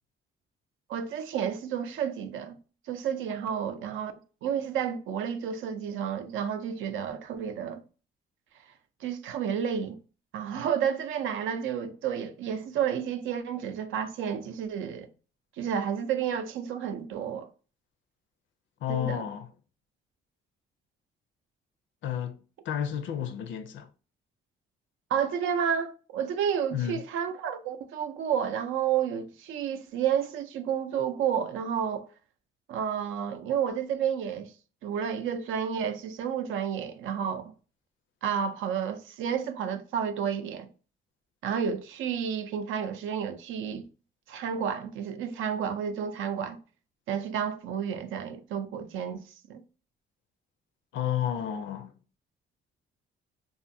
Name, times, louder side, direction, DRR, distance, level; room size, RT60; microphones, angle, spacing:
voice 1, 0.9-2.6 2.9-7.8 9.0-10.0 10.3-15.1 15.6-17.5 18.9-19.2 25.1-32.1 32.7-34.5 34.8-37.5 38.2-40.7 41.4-43.8 44.3-46.6 47.1-49.2 49.5-49.6, right 8 dB, 80° right, 0.5 m, -31 dB
voice 2, 18.8-19.5 22.0-22.4 22.6-23.9 26.7-27.0 50.9-51.9, left 10 dB, 70° left, 0.5 m, -31 dB
2.6 x 2.4 x 2.5 m
cardioid pair, 90°, 20 cm